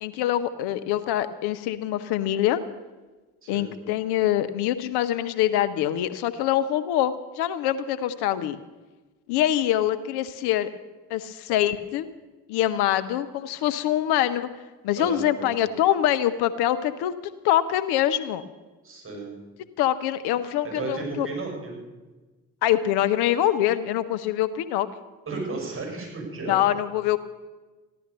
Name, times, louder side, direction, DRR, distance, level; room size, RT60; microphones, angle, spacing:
voice 1, 0.0-2.6 3.5-8.6 9.3-10.7 11.1-12.1 12.5-14.5 14.8-17.1 17.4-18.4 19.8-21.3 22.6-24.9 26.5-27.2, left 12 dB, 65° left, 12 dB, 0.9 m, -24 dB
voice 2, 15.0-15.5 18.8-19.3 20.7-21.7 25.3-26.6, right 3 dB, 30° right, 0 dB, 7.0 m, -33 dB
15.0 x 12.0 x 6.8 m, 1.2 s
hypercardioid pair, 50°, 43 cm